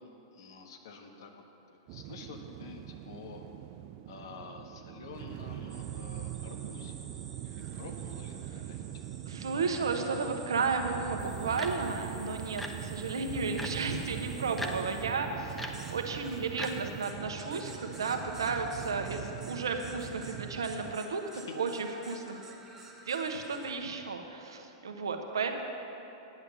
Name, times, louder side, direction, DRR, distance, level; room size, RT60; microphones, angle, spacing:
voice 1, 0.3-1.4 1.7-3.4 4.0-7.0 7.4-9.0 21.3-21.6, left 5 dB, 70° left, 3 dB, 1.3 m, -48 dB
sound 1, 1.9-20.9, right 12 dB, 50° right, 0.5 m, -42 dB
sound 2, 5.7-23.7, right 3 dB, 15° right, 1.7 m, -52 dB
voice 2, 9.3-21.2 21.6-22.4 23.0-25.6, right 4 dB, 80° right, 4 dB, 1.1 m, -33 dB
sound 3, 11.2-17.0, equal, 5° left, 1.0 m, -44 dB
10.5 x 8.3 x 6.8 m, 3.0 s
hypercardioid pair, 100°, 2 cm